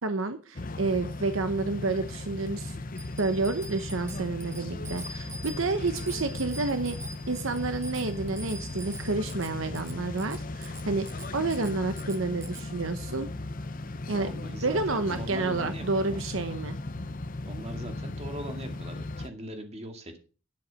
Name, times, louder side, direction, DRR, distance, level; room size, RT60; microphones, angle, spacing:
voice 1, 0.0-2.8 3.2-7.0 7.3-13.3 14.1-14.3 14.6-16.8, right 3 dB, 70° right, 9 dB, 0.9 m, -30 dB
sound 1, 0.6-19.3, left 2 dB, 40° left, 0.7 m, -37 dB
Bicycle bell, 3.0-12.7, right 1 dB, 15° right, 1.0 m, -45 dB
voice 2, 4.6-5.0 14.1-16.3 17.5-20.2, right 1 dB, 30° right, 5 dB, 2.2 m, -41 dB
10.5 x 8.0 x 5.7 m, 0.35 s
head